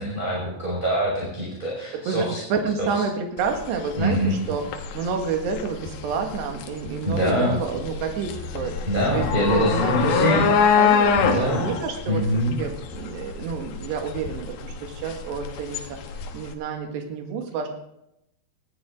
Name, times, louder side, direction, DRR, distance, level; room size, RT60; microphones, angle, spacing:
voice 1, 0.0-2.4 4.0-4.4 7.0-7.6 8.9-10.5 11.2-11.6 12.1-12.6, equal, 10° right, -5 dB, 4.9 m, -24 dB
voice 2, 1.9-4.7 4.9-8.8 9.1-11.2 11.5-16.0 16.3-17.7, right 5 dB, 80° right, 4 dB, 3.9 m, -29 dB
sound 1, 3.4-16.5, left 6 dB, 70° left, 2.8 m, -25 dB
20.0 x 13.5 x 3.7 m, 0.82 s
omnidirectional pair, 4.9 m